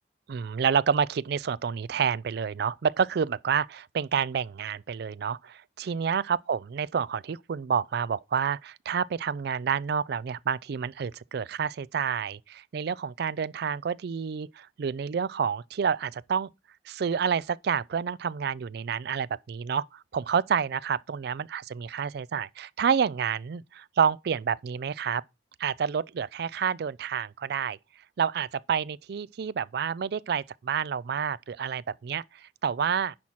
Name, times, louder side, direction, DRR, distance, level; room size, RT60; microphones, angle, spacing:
voice 1, 0.3-16.5 16.9-25.2 25.6-27.8 28.2-33.2, right 7 dB, 65° right, 0.4 m, -29 dB
10.5 x 4.4 x 5.7 m
head